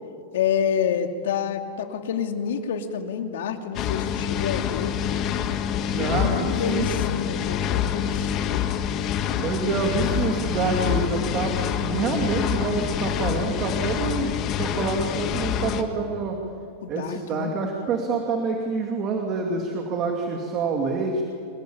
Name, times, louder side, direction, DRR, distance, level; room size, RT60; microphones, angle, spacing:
voice 1, 0.3-5.0 5.9-8.6 16.8-17.5, left 7 dB, 85° left, 5 dB, 2.7 m, -28 dB
sound 1, 3.7-15.8, left 9 dB, 30° left, 1.6 m, -26 dB
voice 2, 5.9-6.9 9.4-16.4 16.9-21.2, right 4 dB, 25° right, 2 dB, 2.5 m, -27 dB
27.0 x 21.0 x 9.0 m, 2.6 s
supercardioid pair, 170°, 0 cm